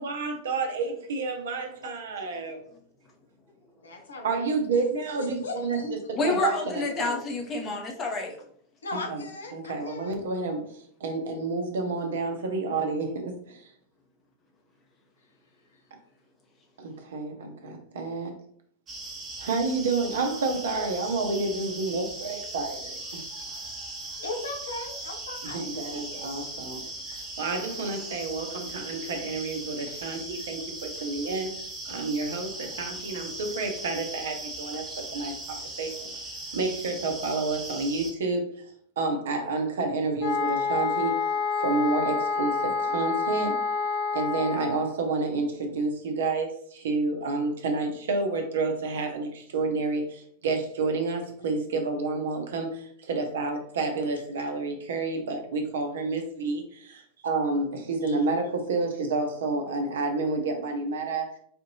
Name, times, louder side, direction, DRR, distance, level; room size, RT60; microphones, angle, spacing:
voice 1, 0.0-2.6 4.2-5.8 6.1-7.2 8.9-13.6 16.8-18.3 19.4-23.2 25.5-26.8 27.2-31.5 31.8-34.8 35.1-36.1 36.5-38.5 39.0-41.3 41.6-43.6 44.1-61.3, right 3 dB, 60° right, 4 dB, 0.7 m, -29 dB
voice 2, 3.8-4.8 5.2-5.9 8.8-10.2 24.2-26.2 27.1-27.2 58.0-58.2, left 2 dB, 70° left, 3 dB, 0.7 m, -38 dB
voice 3, 5.8-8.4, left 3 dB, 25° left, 1 dB, 0.9 m, -29 dB
sound 1, 18.9-38.1, right 2 dB, 25° right, 1.0 m, -39 dB
sound 2, 40.2-44.9, left 5 dB, 45° left, 1.5 m, -28 dB
4.2 x 2.6 x 2.7 m, 0.62 s
figure-of-eight pair, 90°, 0 cm